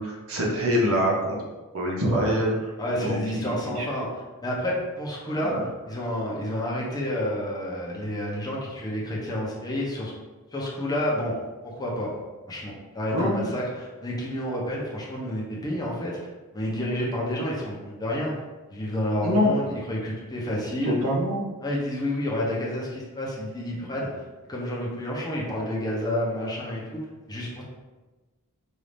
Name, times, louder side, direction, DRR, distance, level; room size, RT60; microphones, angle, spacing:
voice 1, 0.0-1.4 1.7-2.7 3.0-3.9 5.4-5.6 13.1-13.4 19.2-19.5 20.8-21.4, equal, 70° right, -3 dB, 1.1 m, -25 dB
voice 2, 2.8-4.1 4.4-5.5 5.9-10.1 10.5-11.3 11.6-12.1 12.5-16.2 16.5-18.3 18.7-20.9 21.6-24.1 24.5-27.0 27.3-27.6, left 1 dB, 20° left, -4 dB, 0.8 m, -29 dB
5.2 x 2.7 x 3.3 m, 1.2 s
head